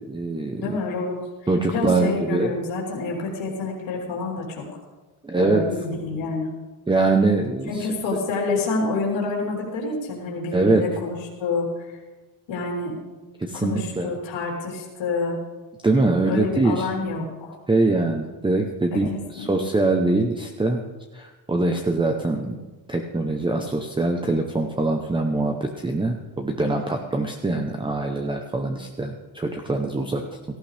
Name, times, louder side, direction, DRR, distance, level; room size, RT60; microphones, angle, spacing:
voice 1, 0.1-0.8 1.5-2.5 5.2-5.7 6.9-7.9 10.5-10.9 13.4-14.1 15.8-16.9 17.7-20.8 21.1-30.2, right 2 dB, 10° right, 3 dB, 0.8 m, -23 dB
voice 2, 0.6-1.2 1.7-4.6 5.3-6.5 7.7-12.0 12.5-13.0 13.5-15.4 16.3-17.6 18.9-19.0 19.4-19.5, left 3 dB, 80° left, -3 dB, 3.8 m, -28 dB
17.0 x 14.5 x 3.4 m, 1.2 s
cardioid pair, 140°, 45 cm